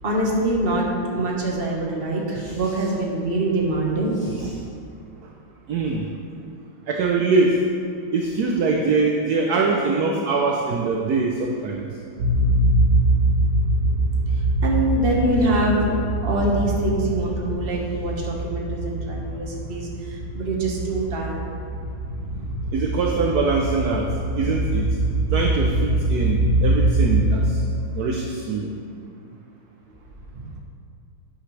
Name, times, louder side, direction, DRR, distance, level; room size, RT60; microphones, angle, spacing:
voice 1, 0.0-4.4 14.6-21.5 30.3-30.5, right 1 dB, 30° right, -2 dB, 1.4 m, -24 dB
voice 2, 5.7-6.1 6.9-7.6 8.1-11.9 22.7-25.0 25.3-27.6 27.9-28.7, right 4 dB, 60° right, 0 dB, 1.0 m, -23 dB
sound 1, 12.2-27.8, right 1 dB, 85° right, 2.1 m, -23 dB
11.5 x 9.1 x 3.3 m, 2.4 s
omnidirectional pair, 2.3 m